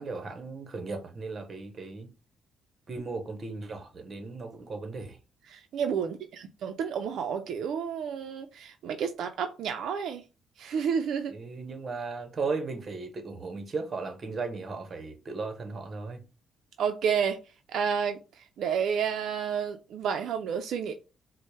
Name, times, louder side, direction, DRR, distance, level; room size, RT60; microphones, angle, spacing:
voice 1, 0.0-2.1 2.9-5.2 11.3-16.2, right 4 dB, 35° right, 0.8 m, -36 dB
voice 2, 5.5-10.2 10.6-11.3 16.8-17.4 17.7-20.9, right 7 dB, 70° right, 0.4 m, -30 dB
4.2 x 2.0 x 3.1 m
cardioid pair, 115°, 0 cm